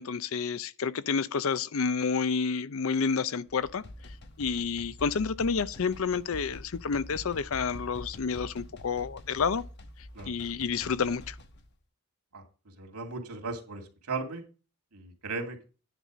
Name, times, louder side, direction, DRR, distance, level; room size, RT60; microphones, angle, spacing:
voice 1, 0.0-3.8 4.4-9.6 10.3-11.4, left 5 dB, 65° left, 0.5 m, -29 dB
sound 1, 3.5-11.7, left 1 dB, 50° left, 1.1 m, -46 dB
voice 2, 12.8-13.8 14.1-14.4 14.9-15.6, right 4 dB, 85° right, 2.5 m, -36 dB
10.0 x 4.2 x 7.3 m
head